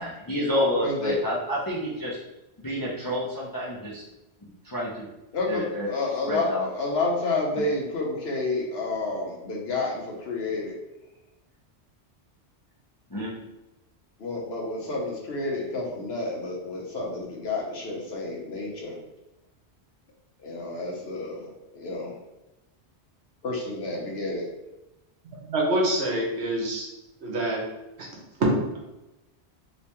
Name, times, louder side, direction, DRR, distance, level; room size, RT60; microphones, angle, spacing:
voice 1, 0.0-2.2 2.6-4.0 4.6-5.1 5.4-6.7 7.6-7.7 13.1-13.4, left 1 dB, 30° left, -5 dB, 0.4 m, -29 dB
voice 2, 0.8-1.2 5.3-10.7 14.2-19.0 20.4-22.1 23.4-24.5, left 2 dB, 65° left, -1 dB, 1.1 m, -30 dB
voice 3, 25.5-26.9 27.2-27.6 28.0-28.1 28.4-28.8, right 1 dB, 70° right, -1 dB, 1.1 m, -25 dB
3.3 x 3.0 x 2.9 m, 0.97 s
omnidirectional pair, 1.2 m